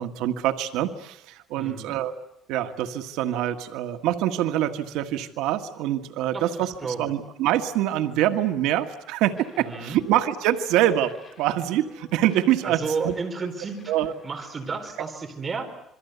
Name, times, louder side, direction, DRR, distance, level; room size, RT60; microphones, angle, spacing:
voice 1, 0.0-2.2 2.5-13.1 13.9-14.1, right 12 dB, 90° right, 7 dB, 1.6 m, -25 dB
voice 2, 1.6-1.9 6.3-6.5 6.8-7.1 9.6-10.0 12.6-13.8 14.2-15.7, right 4 dB, 25° right, 4 dB, 4.4 m, -31 dB
sound 1, 9.3-14.9, left 6 dB, 30° left, 6.3 m, -53 dB
27.5 x 23.5 x 8.1 m, 0.79 s
cardioid pair, 165°, 0 cm